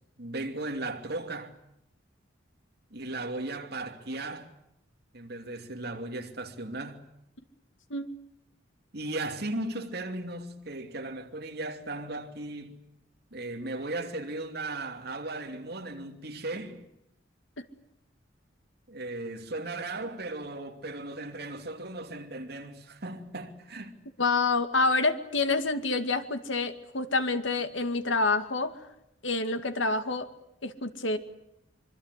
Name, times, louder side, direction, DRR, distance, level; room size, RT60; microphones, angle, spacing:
voice 1, 0.2-1.5 2.9-4.5 5.1-7.0 8.9-12.8 13.3-16.8 18.9-24.0, right 2 dB, 55° right, 2.8 m, -36 dB
voice 2, 24.2-28.7 29.2-30.3 30.6-31.2, left 3 dB, 90° left, 2.2 m, -27 dB
25.5 x 24.0 x 8.3 m
head